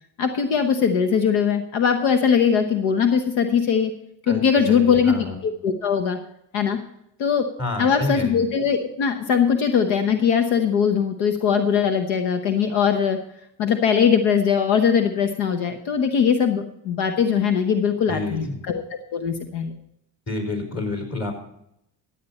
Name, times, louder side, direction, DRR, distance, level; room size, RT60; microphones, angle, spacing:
voice 1, 0.2-3.9 4.3-5.2 5.4-6.2 6.5-6.8 7.2-7.4 7.8-13.2 13.6-18.8 19.1-19.8, left 7 dB, 85° left, 7 dB, 1.1 m, -20 dB
voice 2, 4.3-5.4 7.6-8.4 18.1-18.6 20.3-21.3, left 2 dB, 35° left, 3 dB, 4.9 m, -29 dB
14.5 x 8.6 x 4.2 m, 0.77 s
supercardioid pair, 70°, 45 cm